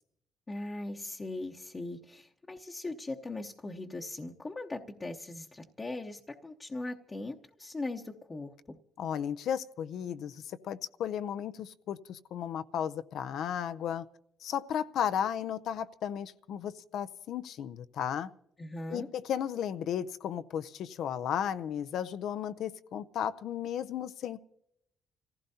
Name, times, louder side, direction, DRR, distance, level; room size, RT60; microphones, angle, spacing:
voice 1, 0.5-8.8 18.6-19.1, left 2 dB, 25° left, 0.8 m, -40 dB
voice 2, 9.0-14.1 14.4-18.3 18.9-24.4, left 9 dB, 75° left, 0.5 m, -34 dB
29.0 x 15.5 x 2.8 m
cardioid pair, 90°, 0 cm